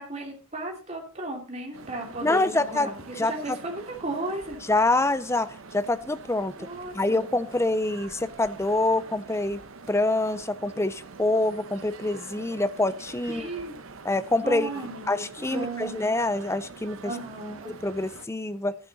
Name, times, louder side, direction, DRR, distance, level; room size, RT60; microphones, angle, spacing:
voice 1, 0.0-2.9 3.2-4.6 6.6-7.3 13.3-13.7 14.4-16.1 17.0-17.7, right 2 dB, 30° right, 1 dB, 2.8 m, -35 dB
sound 1, 1.7-18.3, right 4 dB, 75° right, 0.9 m, -45 dB
voice 2, 2.2-2.9 3.2-3.3 4.7-6.5 6.9-13.5 14.0-14.7 15.1-17.1 17.7-18.8, left 2 dB, 15° left, 14 dB, 0.5 m, -26 dB
12.0 x 9.6 x 4.0 m, 0.37 s
head